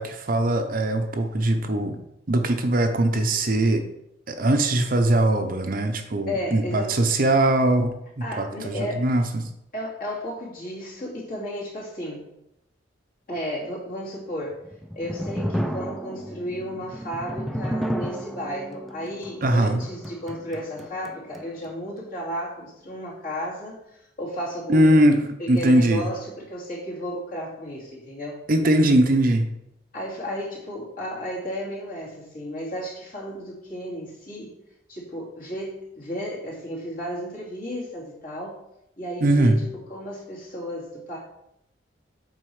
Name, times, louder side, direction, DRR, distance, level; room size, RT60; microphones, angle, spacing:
voice 1, 0.0-2.0 2.3-3.8 4.3-7.9 8.4-9.5 19.4-19.8 24.7-26.0 28.5-29.5 39.2-39.6, right 1 dB, 45° right, 6 dB, 0.7 m, -21 dB
voice 2, 6.3-7.0 8.2-9.1 9.7-12.3 13.3-14.6 14.9-25.1 25.4-28.4 29.9-34.6 34.9-38.6 39.0-41.2, equal, 45° left, -5 dB, 2.7 m, -33 dB
sound 1, 14.5-21.7, equal, ahead, 0.5 m, -32 dB
7.7 x 4.6 x 4.8 m, 0.82 s
head